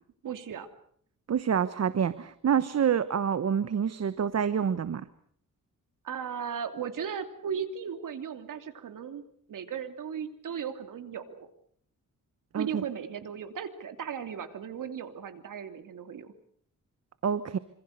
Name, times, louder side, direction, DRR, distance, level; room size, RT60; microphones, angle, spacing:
voice 1, 0.2-0.7 6.0-11.5 12.5-16.3, right 7 dB, 75° right, 8 dB, 2.9 m, -36 dB
voice 2, 1.3-5.0 12.5-12.8 17.2-17.6, right 8 dB, 55° right, 14 dB, 1.1 m, -27 dB
26.5 x 26.5 x 6.7 m, 0.63 s
cardioid pair, 115°, 32 cm